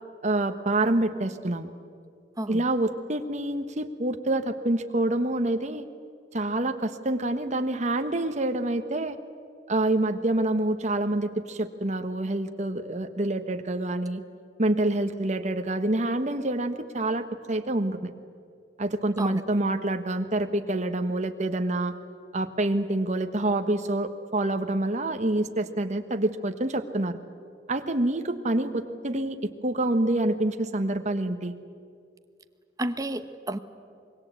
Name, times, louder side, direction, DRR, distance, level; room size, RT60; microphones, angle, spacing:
voice 1, 0.2-1.7 2.5-5.9 6.3-9.2 9.7-14.2 14.6-18.1 18.8-21.9 22.3-27.2 27.7-31.5, right 1 dB, 40° right, 8 dB, 1.2 m, -27 dB
voice 2, 32.8-33.6, right 1 dB, 20° right, 9 dB, 0.9 m, -31 dB
25.0 x 21.5 x 8.3 m, 2.3 s
head